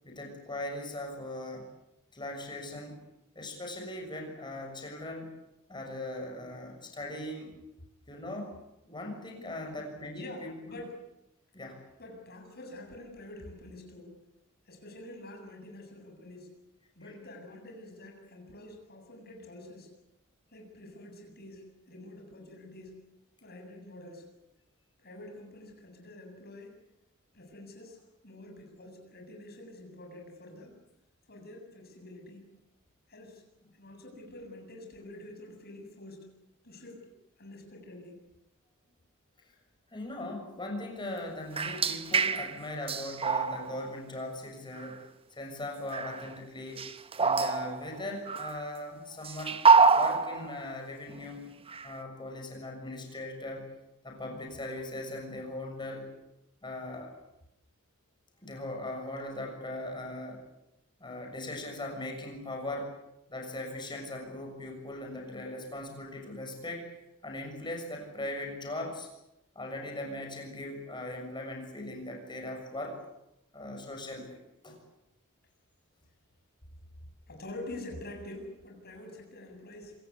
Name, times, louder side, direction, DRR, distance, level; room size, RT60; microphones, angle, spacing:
voice 1, 0.0-1.7 2.1-3.0 3.3-5.3 5.7-7.5 8.1-8.6 8.9-10.7 11.5-11.8 39.9-45.0 45.3-46.8 47.2-49.6 49.9-51.4 51.8-53.7 54.0-56.1 56.6-57.1 58.4-60.4 61.0-62.9 63.3-66.9 67.2-69.1 69.5-73.0 73.5-74.4 74.6-74.8, left 1 dB, 20° left, 2 dB, 6.8 m, -39 dB
voice 2, 10.1-11.0 12.0-14.2 14.7-16.6 16.9-19.9 20.5-23.0 23.4-24.3 25.0-26.8 27.3-28.0 28.2-30.7 31.3-32.5 33.1-33.4 33.8-36.3 36.6-37.1 37.4-38.2 77.3-80.0, left 1 dB, 50° left, 2 dB, 7.8 m, -47 dB
sound 1, 41.6-42.6 42.9-43.9 44.8-44.9 45.9-46.3 46.8-48.7 49.2-50.6 51.1-51.3 51.7-51.9, right 4 dB, 25° right, 1.2 m, -26 dB
26.5 x 18.0 x 9.7 m, 0.86 s
head